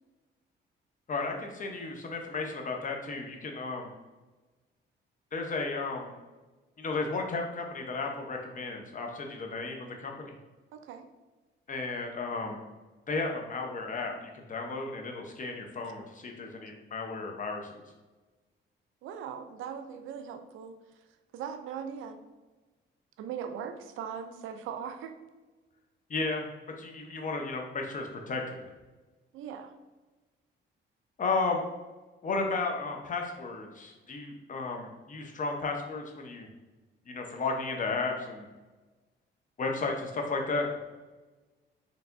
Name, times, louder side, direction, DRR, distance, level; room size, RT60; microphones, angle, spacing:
voice 1, 1.1-3.9 5.3-6.1 6.8-10.3 11.7-12.6 13.1-17.7 26.1-26.5 26.8-28.7 31.2-31.6 32.2-36.5 37.1-38.5 39.6-40.8, left 3 dB, 40° left, 2 dB, 0.8 m, -34 dB
voice 2, 10.7-11.1 19.0-20.7 21.3-22.2 23.2-25.2 29.3-29.7, right 7 dB, 85° right, 7 dB, 0.5 m, -39 dB
4.5 x 3.3 x 2.5 m, 1.2 s
cardioid pair, 90°, 20 cm